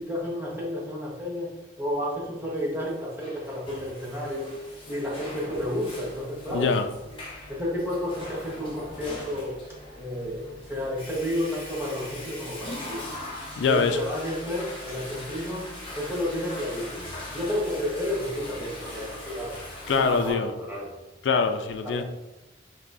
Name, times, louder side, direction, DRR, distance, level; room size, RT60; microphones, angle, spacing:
voice 1, 0.0-1.5 1.8-4.5 4.9-6.7 7.5-9.5 9.9-13.2 13.6-15.7 15.9-19.6 19.9-20.9 21.8-22.0, left 1 dB, 15° right, -5 dB, 1.1 m, -31 dB
Water / Toilet flush, 2.8-20.3, left 1 dB, 30° left, 1.1 m, -41 dB
voice 2, 6.5-6.9 13.6-14.0 19.9-20.5 21.2-22.0, left 5 dB, 85° left, 7 dB, 0.4 m, -23 dB
5.3 x 3.0 x 2.6 m, 1.0 s
head